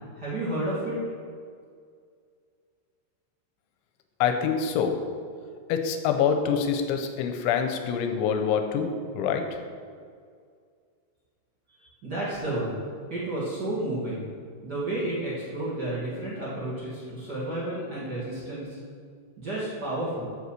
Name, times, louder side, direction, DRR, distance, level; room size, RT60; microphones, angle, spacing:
voice 1, 0.2-1.0 12.0-12.8 13.1-14.3 14.6-18.8 19.4-20.3, right 1 dB, 30° right, -8 dB, 2.0 m, -31 dB
voice 2, 4.2-5.0 5.7-8.9 9.1-9.6, left 7 dB, 90° left, 6 dB, 3.1 m, -25 dB
8.1 x 8.0 x 6.6 m, 2.1 s
omnidirectional pair, 5.4 m